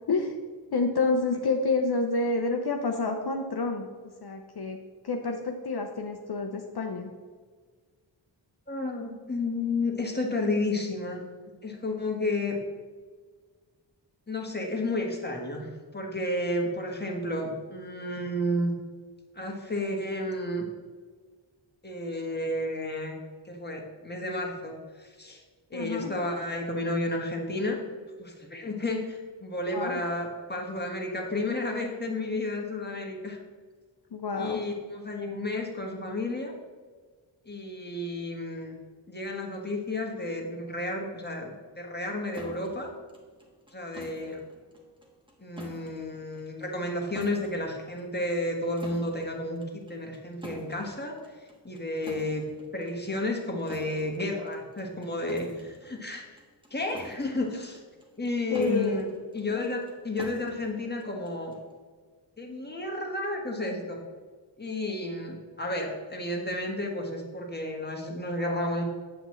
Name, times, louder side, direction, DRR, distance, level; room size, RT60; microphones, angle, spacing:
voice 1, 0.1-0.4 0.7-3.9 4.2-4.8 5.0-7.1 25.7-26.1 29.7-30.0 34.1-34.6 58.5-59.1, left 3 dB, 55° left, 3 dB, 0.7 m, -28 dB
voice 2, 8.7-11.2 11.6-12.6 14.3-18.7 19.3-20.7 21.8-23.1 23.4-25.4 25.7-27.8 28.2-33.4 34.4-36.5 37.4-38.7 39.1-42.9 43.7-44.4 45.4-52.4 52.7-56.2 56.7-57.8 58.2-59.0 59.3-61.5 62.4-64.0 64.6-68.8, left 1 dB, 20° left, 0 dB, 1.4 m, -32 dB
sound 1, 42.3-61.7, right 1 dB, 10° right, 1.3 m, -49 dB
7.8 x 7.7 x 3.1 m, 1.5 s
wide cardioid pair, 80°, 48 cm